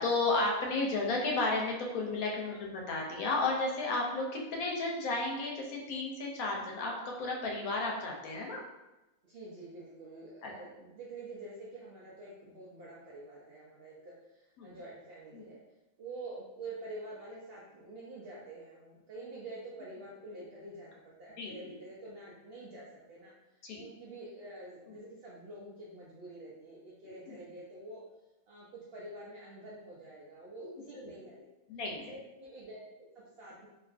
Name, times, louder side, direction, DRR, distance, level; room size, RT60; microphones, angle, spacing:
voice 1, 0.0-8.6 10.4-10.5 14.6-14.7 15.3-15.4 21.4-21.7 23.6-23.8 27.3-27.4 31.7-32.1, left 3 dB, 85° left, 0 dB, 1.0 m, -33 dB
voice 2, 2.4-2.8 9.2-15.6 16.0-28.0 28.5-31.5 32.0-33.7, right 2 dB, 65° right, -6 dB, 0.6 m, -47 dB
2.7 x 2.4 x 2.4 m, 1.0 s
omnidirectional pair, 1.5 m